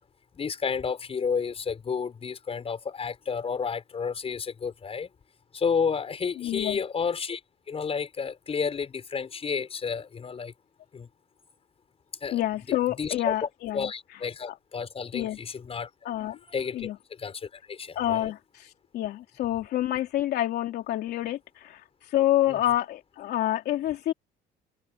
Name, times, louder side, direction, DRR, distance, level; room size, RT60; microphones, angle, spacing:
voice 1, 0.3-5.1 5.5-7.4 7.7-10.5 10.9-11.1 12.2-12.4 13.0-13.5 13.7-15.9 16.2-16.9 17.2-18.3 22.5-22.6, left 6 dB, 35° left, 6.4 m, -31 dB
voice 2, 6.4-6.8 12.3-13.9 14.5-14.6 15.1-15.4 16.0-16.4 16.7-17.0 17.9-21.8 22.1-24.1, left 13 dB, 75° left, 3.1 m, -28 dB
cardioid pair, 110°, 17 cm